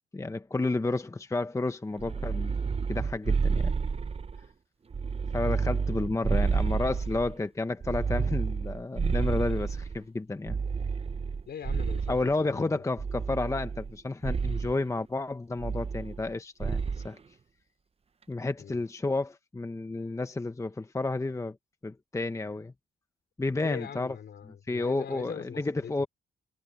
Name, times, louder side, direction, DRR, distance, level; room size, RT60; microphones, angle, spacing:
voice 1, 0.1-2.6 2.9-3.7 5.3-10.6 12.1-17.2 18.3-21.6 21.8-22.7 23.4-24.2 24.7-26.1, left 2 dB, 15° left, 1.0 m, -31 dB
sound 1, 2.0-4.4 4.9-7.3 7.8-10.0 10.5-12.3 13.0-13.9 14.2-14.7 15.6-16.3 16.6-17.1, right 5 dB, 30° right, 0.9 m, -30 dB
voice 2, 11.5-12.8 18.6-18.8 23.6-25.9, left 8 dB, 60° left, 4.4 m, -42 dB
cardioid pair, 90°, 20 cm